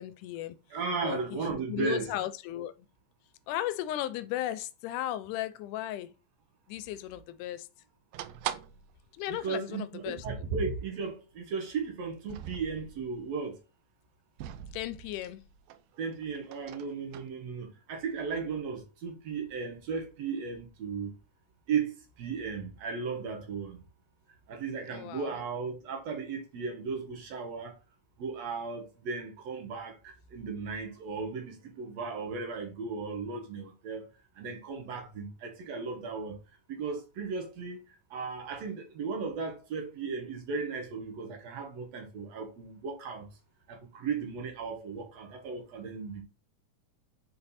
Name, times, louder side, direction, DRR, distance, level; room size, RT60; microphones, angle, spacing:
voice 1, 0.0-0.6 1.0-2.7 3.5-6.1 6.7-7.7 9.1-10.3 14.7-15.4 24.9-25.3, left 13 dB, 85° left, 2.1 m, -36 dB
voice 2, 0.7-2.1 9.4-13.6 16.0-21.1 21.7-21.9 22.2-23.8 24.5-27.8 28.2-34.0 34.4-36.4 36.7-37.8 38.1-43.3 43.7-46.2, right 5 dB, 65° right, 2.0 m, -36 dB
sound 1, 8.1-9.0 9.4-9.5 9.7-9.8 10.6-10.8 12.1-13.2 14.4-15.8 16.1-17.3, right 11 dB, 85° right, 1.5 m, -42 dB
5.3 x 4.4 x 4.1 m
omnidirectional pair, 3.6 m